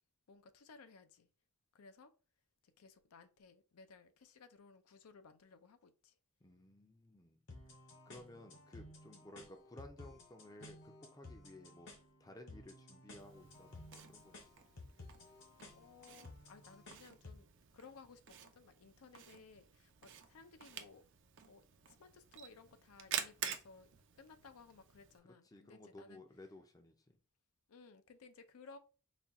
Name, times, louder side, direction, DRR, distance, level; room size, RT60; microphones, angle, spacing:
voice 1, 0.3-1.3 1.7-2.1 2.6-6.1 8.1-8.4 15.7-17.4 17.7-21.0 21.4-21.6 22.0-23.9 24.2-26.2 27.7-28.8, left 4 dB, 80° left, 0.5 m, -59 dB
voice 2, 6.4-7.4 8.1-11.9 12.2-14.4 25.2-27.2, left 1 dB, 15° left, 0.4 m, -56 dB
sound 1, 7.5-17.5, left 2 dB, 55° left, 0.9 m, -56 dB
Camera, 13.2-25.2, right 8 dB, 55° right, 0.5 m, -49 dB
4.2 x 2.3 x 3.5 m
head